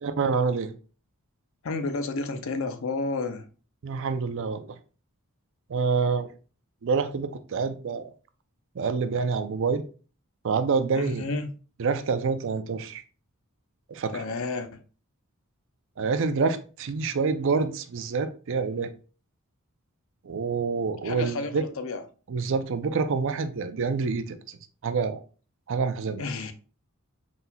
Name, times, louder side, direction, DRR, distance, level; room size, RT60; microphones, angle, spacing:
voice 1, 0.0-0.7 3.8-4.8 5.7-6.3 6.8-8.1 8.8-9.8 10.4-11.3 11.8-13.0 13.9-14.2 16.0-18.9 20.2-21.6 22.3-24.4 24.8-25.2 25.7-26.3, right 5 dB, 60° right, 0.4 m, -27 dB
voice 2, 1.6-3.5 10.9-11.5 14.1-14.8 21.0-22.0 26.2-26.5, left 3 dB, 60° left, 0.5 m, -31 dB
4.1 x 4.0 x 2.2 m
head